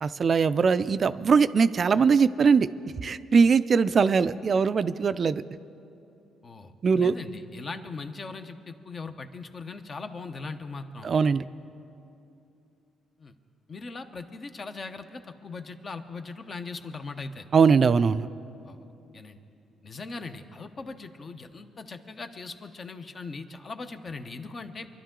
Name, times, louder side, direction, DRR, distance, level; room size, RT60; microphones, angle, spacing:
voice 1, 0.0-2.7 3.0-5.4 6.8-7.1 11.0-11.4 17.5-18.3, right 5 dB, 45° right, 14 dB, 0.4 m, -21 dB
voice 2, 6.4-11.1 13.2-13.3 13.7-17.4 18.7-18.8 19.1-19.4 19.8-24.9, left 4 dB, 40° left, 8 dB, 0.9 m, -39 dB
23.5 x 11.5 x 3.8 m, 2.7 s
cardioid pair, 90°, 0 cm